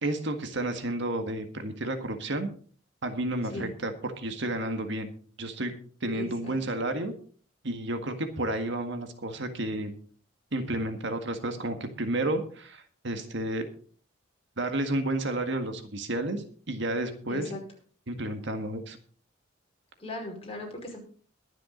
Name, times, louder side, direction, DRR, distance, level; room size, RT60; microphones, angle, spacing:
voice 1, 0.0-2.5 3.0-5.1 5.4-5.7 6.0-7.1 7.6-9.9 10.5-13.7 14.6-17.5 18.1-19.0, right 1 dB, 65° right, 7 dB, 1.8 m, -31 dB
voice 2, 6.1-6.5 17.3-17.6 20.0-21.0, left 2 dB, 30° left, 0 dB, 5.3 m, -38 dB
22.0 x 7.5 x 3.9 m, 0.43 s
head